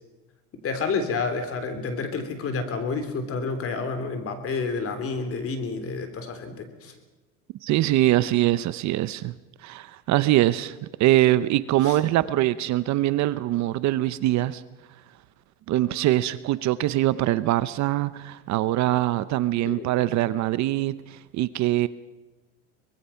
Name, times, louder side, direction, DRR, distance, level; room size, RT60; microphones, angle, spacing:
voice 1, 0.6-6.9 11.8-12.0 19.7-19.9, left 4 dB, 35° left, 3.5 m, -29 dB
voice 2, 7.6-9.3 9.6-14.6 15.7-21.9, right 15 dB, 45° right, 0.8 m, -23 dB
24.5 x 20.0 x 5.8 m
supercardioid pair, 130°, 38 cm